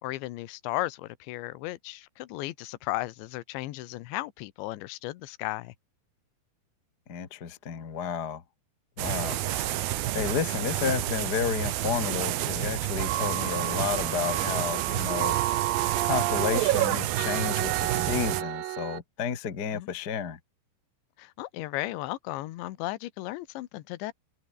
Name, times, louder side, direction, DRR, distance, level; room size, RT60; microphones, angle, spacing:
voice 1, 0.0-5.7 19.7-19.9 21.2-24.1, left 17 dB, 80° left, 3.4 m, -35 dB
voice 2, 7.1-8.4 9.0-9.8 10.1-15.3 16.0-20.4, left 7 dB, 40° left, 1.5 m, -31 dB
sound 1, 9.0-18.4, right 14 dB, 65° right, 2.7 m, -30 dB
sound 2, 13.0-19.0, right 16 dB, 85° right, 1.9 m, -30 dB
omnidirectional pair, 5.4 m